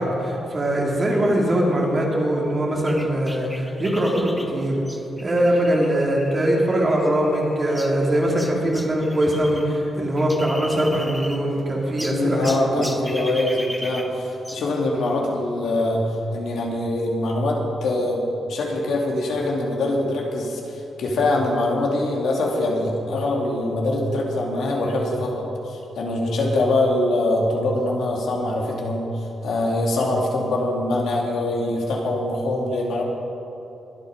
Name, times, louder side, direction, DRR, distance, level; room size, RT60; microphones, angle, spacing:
voice 1, 0.0-4.8 5.2-12.9, right 1 dB, 30° right, -2 dB, 2.7 m, -22 dB
sound 1, 2.9-9.7 9.9-11.6 12.0-14.7, equal, ahead, 0.8 m, -38 dB
voice 2, 12.1-18.2 18.5-33.0, left 2 dB, 80° left, -1 dB, 2.5 m, -23 dB
22.0 x 8.4 x 5.1 m, 2.9 s
wide cardioid pair, 140°, 0 cm